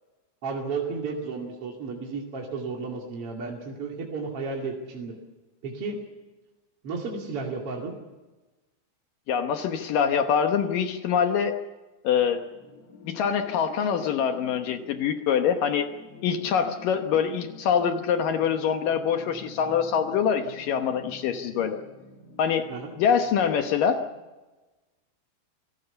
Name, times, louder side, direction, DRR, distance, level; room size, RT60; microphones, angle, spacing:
voice 1, 0.4-5.1 5.6-6.0 6.8-7.9 22.7-22.9, right 4 dB, 40° right, 0 dB, 2.6 m, -33 dB
voice 2, 9.3-11.5 12.0-12.4 13.0-15.9 16.2-21.8 22.4-22.7 23.0-24.0, left 7 dB, 70° left, 7 dB, 2.2 m, -24 dB
sound 1, 12.2-24.2, left 3 dB, 45° left, 2.5 m, -48 dB
26.5 x 17.0 x 7.0 m, 1.2 s
omnidirectional pair, 5.2 m